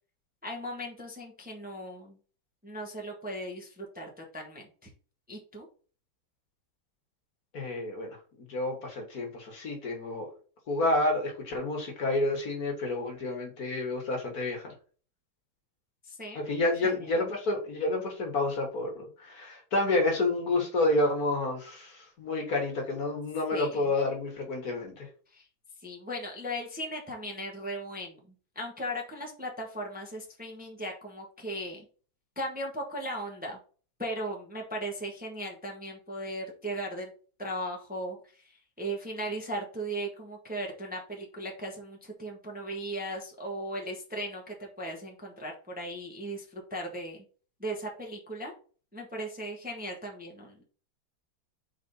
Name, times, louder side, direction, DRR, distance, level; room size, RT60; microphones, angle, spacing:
voice 1, 0.4-2.2 2.6-4.9 5.3-5.7 16.0-16.4 16.8-17.1 23.5-23.9 25.3-25.5 25.8-28.2 28.5-31.8 32.3-33.6 34.0-37.1 37.4-47.2 47.6-48.5 48.9-50.6, right 1 dB, 5° right, 1 dB, 1.2 m, -37 dB
voice 2, 7.5-8.2 8.5-10.3 10.7-14.7 16.4-25.1, left 2 dB, 55° left, 2 dB, 1.8 m, -29 dB
4.6 x 4.1 x 5.4 m, 0.40 s
omnidirectional pair, 2.0 m